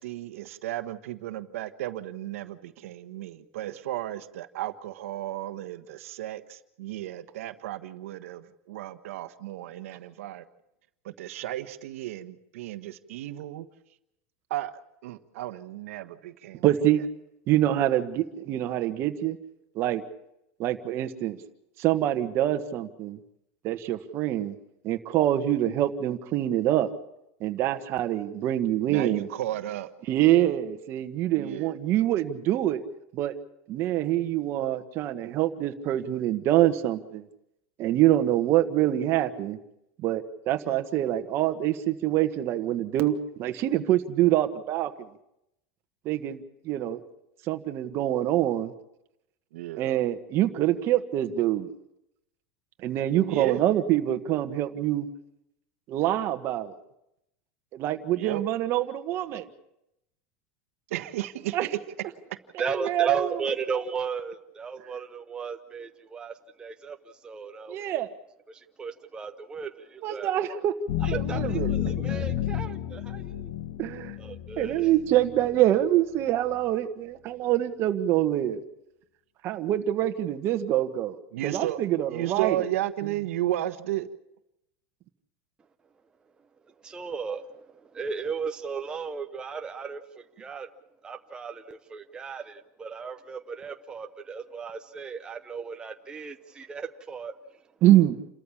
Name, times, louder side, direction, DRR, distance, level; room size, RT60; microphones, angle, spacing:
voice 1, 0.0-10.4 11.0-13.7 14.5-16.6 28.9-29.9 31.3-31.8 40.6-40.8 49.5-49.9 53.2-53.6 58.1-58.4 60.9-61.8 62.3-62.4 81.3-81.8 82.1-84.1, right 14 dB, 85° right, 10 dB, 1.3 m, -34 dB
voice 2, 16.6-17.0 17.5-19.4 19.7-20.0 20.6-21.4 21.8-23.2 23.6-24.5 24.8-26.9 27.4-29.3 30.1-32.8 33.1-33.3 33.7-37.2 37.8-39.6 40.0-44.9 46.0-47.0 47.5-48.7 49.8-51.7 52.8-55.1 55.9-56.7 57.7-59.5 61.5-61.7 62.7-63.3 67.7-68.1 70.0-70.7 71.1-71.8 73.8-74.2 74.6-78.6 79.4-82.6 97.8-98.2, right 13 dB, 35° right, 7 dB, 1.5 m, -25 dB
voice 3, 62.6-68.0 68.5-70.3 71.0-73.5 74.2-74.9 86.8-90.7 91.0-97.3, right 5 dB, 10° right, 5 dB, 0.7 m, -36 dB
sound 1, 70.9-75.6, left 12 dB, 55° left, 1.2 m, -31 dB
29.0 x 13.5 x 7.3 m, 0.82 s
supercardioid pair, 160°, 7 cm